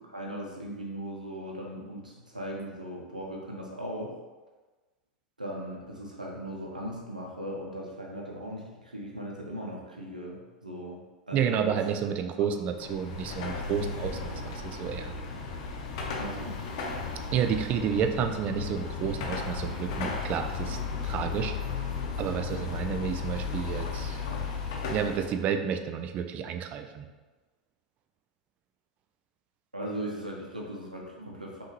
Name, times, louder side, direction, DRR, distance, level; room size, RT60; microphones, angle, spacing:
voice 1, 0.0-4.2 5.4-12.5 16.0-16.6 29.7-31.6, equal, 90° right, -2 dB, 0.9 m, -38 dB
voice 2, 11.3-15.1 17.3-20.8 21.0-21.5 22.2-24.2 24.9-27.1, right 8 dB, 35° right, 7 dB, 0.4 m, -30 dB
Car passing by / Traffic noise roadway noise / Engine, 12.8-25.4, left 5 dB, 55° left, 0.7 m, -34 dB
5.5 x 2.7 x 3.2 m, 1.3 s
figure-of-eight pair, 85°, 4 cm